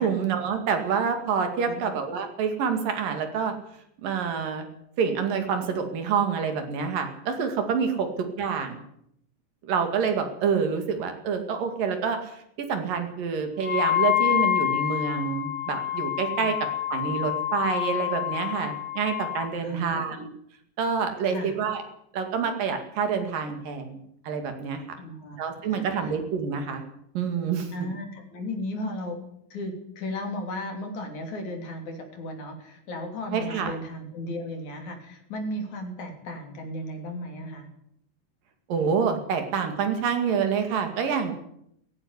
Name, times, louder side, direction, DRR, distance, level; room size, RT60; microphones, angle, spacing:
voice 1, 0.0-3.5 4.0-4.7 5.0-8.8 9.6-16.6 16.9-20.3 20.8-21.8 22.1-24.8 25.4-26.8 27.2-27.7 33.3-33.7 38.7-41.3, right 6 dB, 80° right, 6 dB, 4.1 m, -27 dB
Wind instrument woodwind instrument, 13.6-19.5, left 13 dB, 30° left, 5.2 m, -27 dB
voice 2, 19.6-20.0 21.2-21.6 25.0-25.4 25.7-26.1 27.7-29.2 29.5-37.7, left 1 dB, 60° left, 4 dB, 4.4 m, -35 dB
17.5 x 15.5 x 9.8 m, 0.74 s
omnidirectional pair, 3.9 m